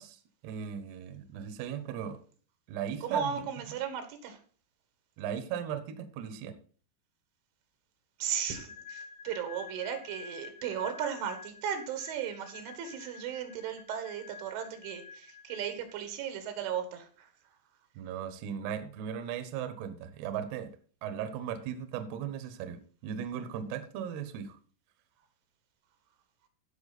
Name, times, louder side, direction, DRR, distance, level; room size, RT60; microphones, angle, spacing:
voice 1, 0.0-2.2 2.7-3.2 5.2-6.6 18.0-20.7 21.0-24.6, right 8 dB, 70° right, 10 dB, 2.8 m, -37 dB
voice 2, 3.0-4.4 8.2-17.3, right 8 dB, 85° right, 7 dB, 4.2 m, -36 dB
sound 1, 8.5-16.1, left 6 dB, 55° left, 1.8 m, -49 dB
16.0 x 5.8 x 4.1 m, 0.41 s
omnidirectional pair, 5.4 m